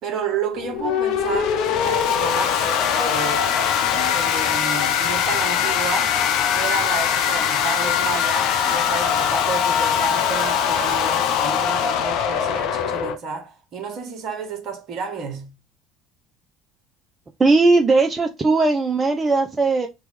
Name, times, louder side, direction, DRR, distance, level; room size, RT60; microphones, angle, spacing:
voice 1, 0.0-3.6 3.9-6.2 6.5-15.5, right 4 dB, 50° right, 1.3 m, -31 dB
sound 1, 0.5-13.2, left 8 dB, 55° left, 0.7 m, -21 dB
voice 2, 17.4-19.9, right 3 dB, 20° right, 0.6 m, -18 dB
4.5 x 3.1 x 3.3 m
figure-of-eight pair, 60°, 0 cm